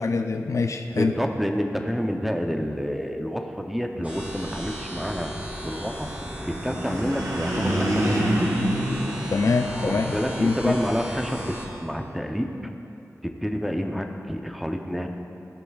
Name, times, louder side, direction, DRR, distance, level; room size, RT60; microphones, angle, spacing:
voice 1, 0.0-1.1 9.3-10.1 10.4-10.7, left 4 dB, 60° left, 6 dB, 0.4 m, -24 dB
voice 2, 1.0-5.3 5.6-6.1 6.4-8.3 9.8-11.6 11.8-12.5 13.2-15.1, equal, ahead, 4 dB, 0.6 m, -28 dB
sound 1, 4.0-11.7, equal, 25° right, 1.8 m, -36 dB
sound 2, 6.5-10.1, right 1 dB, 65° right, 1.2 m, -26 dB
14.5 x 6.0 x 2.4 m, 2.7 s
cardioid pair, 50°, 6 cm